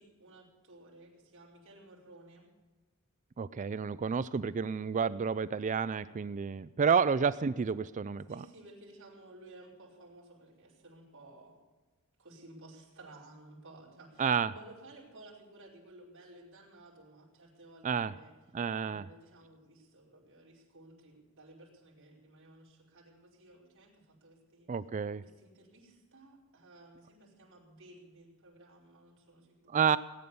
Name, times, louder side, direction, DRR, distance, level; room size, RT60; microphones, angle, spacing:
voice 1, 0.0-2.5 8.3-11.6 12.2-18.3 18.9-24.7 25.2-29.9, right 2 dB, 60° right, -4 dB, 5.0 m, -55 dB
voice 2, 3.4-8.4 14.2-14.5 17.8-18.1 18.5-19.1 24.7-25.2 29.7-30.0, right 6 dB, 35° right, 16 dB, 0.4 m, -30 dB
19.0 x 9.5 x 6.9 m, 1.2 s
head